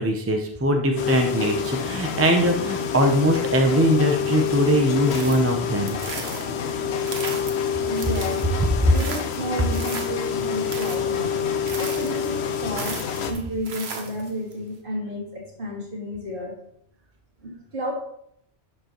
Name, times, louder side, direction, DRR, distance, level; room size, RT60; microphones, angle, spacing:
voice 1, 0.0-6.0 8.6-8.7, equal, 15° right, 3 dB, 0.6 m, -21 dB
sound 1, 1.0-13.3, left 7 dB, 75° left, 1.0 m, -27 dB
sound 2, 4.9-14.5, right 4 dB, 70° right, 1.3 m, -38 dB
voice 2, 7.8-8.4 8.9-16.6 17.4-17.9, equal, 50° right, -2 dB, 2.3 m, -32 dB
11.5 x 5.0 x 3.0 m, 0.70 s
omnidirectional pair, 1.1 m